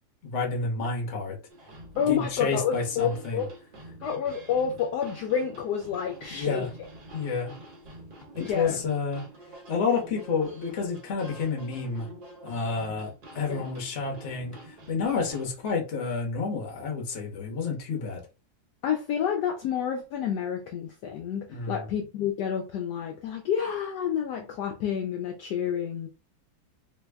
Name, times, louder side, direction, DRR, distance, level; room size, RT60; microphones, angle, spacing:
voice 1, 0.2-1.4 1.9-3.5 6.3-6.7 7.1-7.5 8.3-9.2 9.7-12.1 12.4-18.2 21.5-21.9, left 4 dB, 50° left, 1.0 m, -30 dB
sound 1, 1.5-15.5, right 1 dB, 60° right, 1.6 m, -47 dB
voice 2, 2.0-3.5 4.0-6.9 8.4-8.8 13.5-13.7 18.8-26.1, left 8 dB, 75° left, 1.0 m, -29 dB
3.3 x 2.1 x 3.4 m
omnidirectional pair, 2.0 m